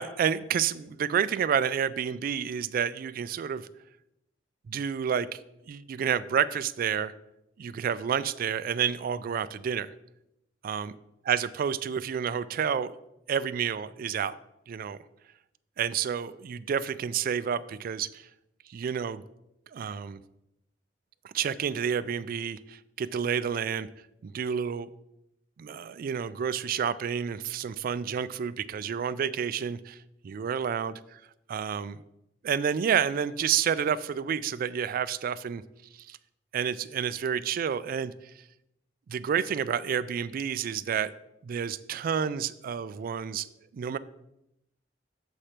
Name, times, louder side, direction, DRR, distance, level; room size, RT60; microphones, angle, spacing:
voice 1, 0.0-3.7 4.7-5.4 5.7-7.1 7.6-9.9 10.6-10.9 11.3-12.9 13.3-14.4 14.7-15.0 15.8-18.2 18.7-19.2 19.7-20.2 21.2-23.9 24.2-24.9 25.6-30.0 30.2-31.2 31.5-32.0 32.4-35.6 36.1-36.2 36.5-38.1 39.1-41.1 41.4-43.5 43.7-44.0, right 7 dB, 50° right, 16 dB, 0.3 m, -29 dB
7.2 x 4.3 x 5.0 m, 0.85 s
head